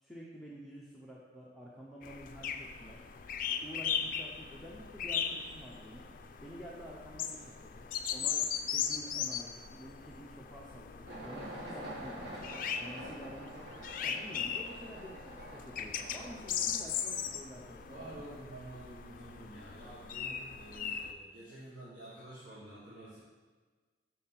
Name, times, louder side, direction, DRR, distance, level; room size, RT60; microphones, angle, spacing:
voice 1, 0.0-3.1 3.6-6.1 6.4-12.5 12.8-18.2, equal, ahead, -6 dB, 0.6 m, -49 dB
sound 1, 2.0-21.1, left 8 dB, 50° left, 0.4 m, -39 dB
sound 2, 11.1-18.4, right 1 dB, 60° right, 1.5 m, -47 dB
voice 2, 17.8-23.2, right 1 dB, 45° right, -10 dB, 1.8 m, -49 dB
6.5 x 4.2 x 5.7 m, 1.4 s
head